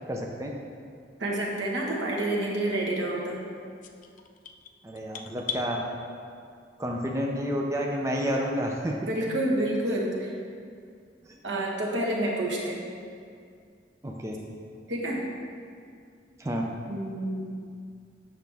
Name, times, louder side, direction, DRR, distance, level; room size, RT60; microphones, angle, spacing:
voice 1, 0.1-0.5 4.8-5.8 6.8-8.9 11.3-11.4 14.0-14.3 16.4-16.6, equal, 15° right, 0 dB, 0.5 m, -30 dB
voice 2, 1.2-3.4 9.1-10.3 11.4-12.9 14.9-15.2 16.9-17.5, right 1 dB, 80° right, -2 dB, 1.2 m, -28 dB
sound 1, 3.8-5.7, left 7 dB, 45° left, 0.4 m, -38 dB
8.2 x 5.8 x 3.4 m, 2.3 s
head